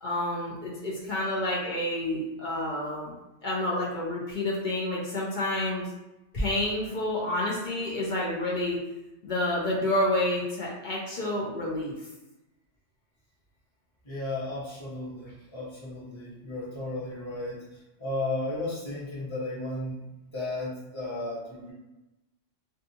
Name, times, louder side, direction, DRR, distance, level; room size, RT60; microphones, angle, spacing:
voice 1, 0.0-3.1 3.4-5.9 6.3-8.8 9.2-11.9, left 1 dB, 55° left, -4 dB, 0.5 m, -29 dB
voice 2, 14.0-20.0 20.3-21.7, left 2 dB, 25° left, -8 dB, 0.8 m, -34 dB
2.6 x 2.3 x 2.7 m, 0.98 s
omnidirectional pair, 1.3 m